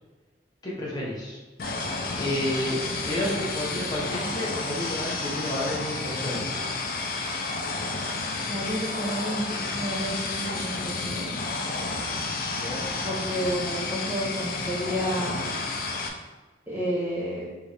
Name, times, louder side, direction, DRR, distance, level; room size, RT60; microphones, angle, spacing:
voice 1, 0.6-1.4 2.2-6.9 12.6-12.9, left 1 dB, 25° left, -5 dB, 1.0 m, -31 dB
sound 1, 1.6-16.1, left 3 dB, 55° left, 0.5 m, -31 dB
voice 2, 8.5-11.2 13.0-15.4 16.7-17.5, equal, 10° right, -8 dB, 0.8 m, -31 dB
4.5 x 3.3 x 3.4 m, 1.3 s
head